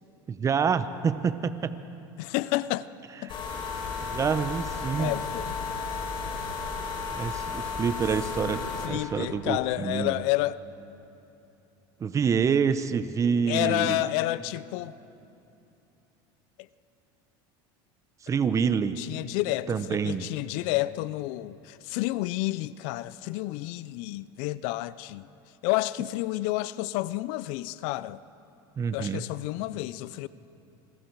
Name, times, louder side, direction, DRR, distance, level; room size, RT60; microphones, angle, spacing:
voice 1, 0.3-1.7 3.2-3.3 4.0-5.1 7.1-10.1 12.0-14.1 18.2-19.0 19.7-20.3 28.8-29.2, right 6 dB, 25° right, 0.9 m, -27 dB
voice 2, 2.2-2.9 3.2-3.3 5.0-5.8 8.8-10.6 13.5-14.9 19.0-25.3 25.6-28.2 28.9-30.3, left 18 dB, 65° left, 0.5 m, -30 dB
sound 1, 3.3-8.9, left 5 dB, 40° left, 4.0 m, -33 dB
28.0 x 21.5 x 4.7 m
supercardioid pair, 120°, 12 cm